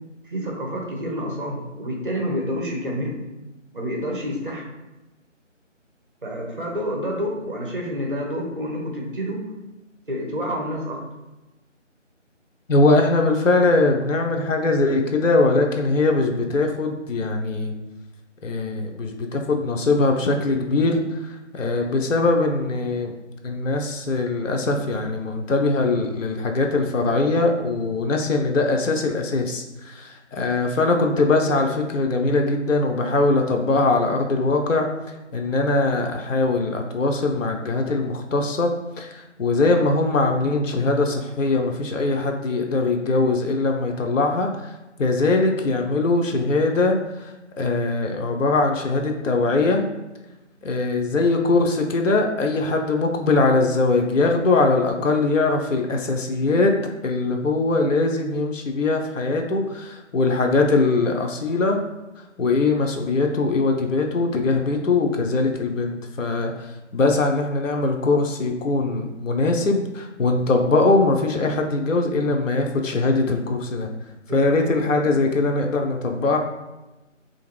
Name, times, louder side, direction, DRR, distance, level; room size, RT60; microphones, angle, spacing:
voice 1, 0.2-3.2 3.7-4.6 6.2-9.4 10.1-11.0 74.3-75.3, equal, 45° right, -1 dB, 0.7 m, -29 dB
voice 2, 12.7-17.7 18.4-23.1 23.4-34.9 35.3-38.7 39.0-44.7 45.0-47.3 47.6-49.8 50.6-56.7 57.0-61.8 62.4-66.5 66.9-73.9 74.3-76.4, left 3 dB, 80° left, 3 dB, 0.5 m, -21 dB
2.5 x 2.4 x 3.1 m, 1.0 s
figure-of-eight pair, 165°, 38 cm